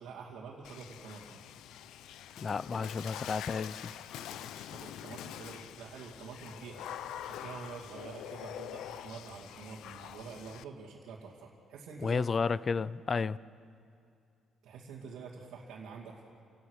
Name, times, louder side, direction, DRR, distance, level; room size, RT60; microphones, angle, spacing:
voice 1, 0.0-1.4 2.7-2.8 4.2-12.2 14.6-16.2, right 5 dB, 90° right, -4 dB, 2.4 m, -47 dB
Water / Splash splatter, 0.6-10.6, left 11 dB, 85° left, 0.6 m, -45 dB
voice 2, 2.4-3.9 12.0-13.4, left 5 dB, 40° left, 19 dB, 0.5 m, -32 dB
30.0 x 18.0 x 6.4 m, 2.4 s
cardioid pair, 90°, 0 cm